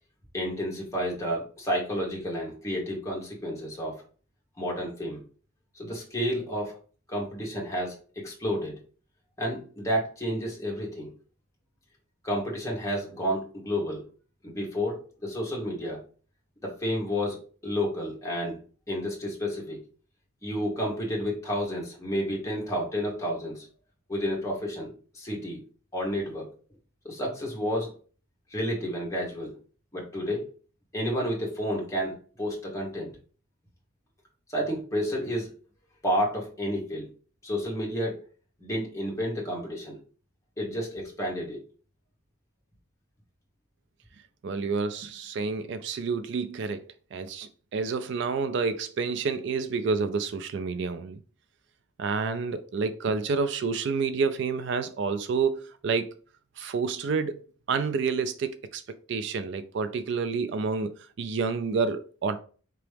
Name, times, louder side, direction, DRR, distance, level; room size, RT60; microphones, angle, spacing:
voice 1, 0.3-4.0 4.6-5.2 5.7-6.8 7.1-8.8 9.4-11.1 12.2-14.0 14.4-16.0 16.6-18.6 18.9-19.8 20.4-23.7 24.1-25.6 25.9-26.5 27.0-27.9 28.5-29.6 29.9-30.4 30.9-33.1 34.5-35.5 36.0-37.1 37.4-38.2 38.6-40.0 40.6-41.6, equal, 15° left, 1.2 m, -30 dB
voice 2, 44.4-46.8 47.1-51.2 52.0-56.2 56.6-58.8 59.1-62.4, right 5 dB, 55° right, 0.3 m, -29 dB
4.6 x 3.0 x 3.3 m
head